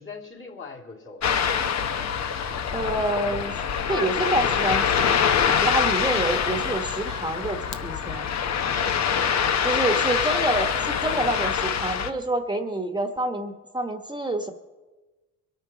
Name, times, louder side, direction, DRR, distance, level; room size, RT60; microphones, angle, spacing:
voice 1, 0.0-1.5 9.5-10.2, left 4 dB, 40° left, 1 dB, 2.6 m, -42 dB
Ocean, 1.2-12.1, left 7 dB, 60° left, 1.1 m, -25 dB
voice 2, 2.7-3.6 3.9-5.1 5.6-8.3 9.6-14.5, right 1 dB, 15° right, 6 dB, 1.2 m, -27 dB
22.5 x 9.0 x 6.0 m, 1.2 s
cardioid pair, 90°, 30 cm